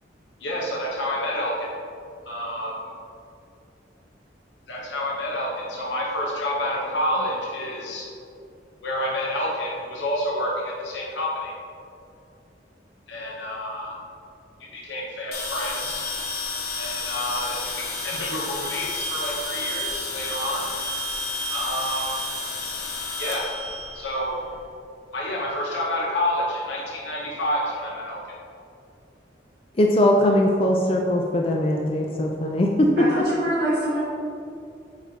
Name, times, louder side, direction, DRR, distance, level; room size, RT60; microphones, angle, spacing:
voice 1, 0.4-1.7 2.3-2.9 4.7-8.1 8.8-11.5 13.1-14.0 14.6-16.0 16.8-20.7 21.5-22.2 23.2-23.5 23.9-24.3 25.1-28.2, left 1 dB, 80° left, -4 dB, 0.8 m, -29 dB
sound 1, 15.3-24.6, left 2 dB, 55° left, 1.0 m, -31 dB
voice 2, 29.8-32.9, left 1 dB, 30° left, 0 dB, 0.4 m, -20 dB
voice 3, 33.0-34.0, right 1 dB, 65° right, -9 dB, 1.4 m, -25 dB
7.8 x 4.7 x 2.8 m, 2.6 s
head